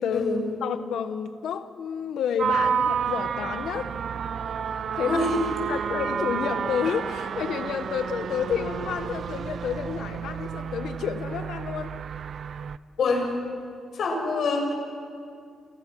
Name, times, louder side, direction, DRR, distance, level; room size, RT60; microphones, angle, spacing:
voice 1, 0.1-0.5 5.0-5.4 5.7-5.8 13.0-13.4 13.9-14.7, left 3 dB, 60° left, 2 dB, 6.8 m, -25 dB
voice 2, 0.6-3.9 4.9-5.3 5.7-11.9, left 8 dB, 80° left, 9 dB, 1.1 m, -30 dB
sound 1, 2.4-12.8, right 7 dB, 55° right, 0.7 m, -30 dB
30.0 x 28.0 x 6.2 m, 2.3 s
cardioid pair, 135°, 0 cm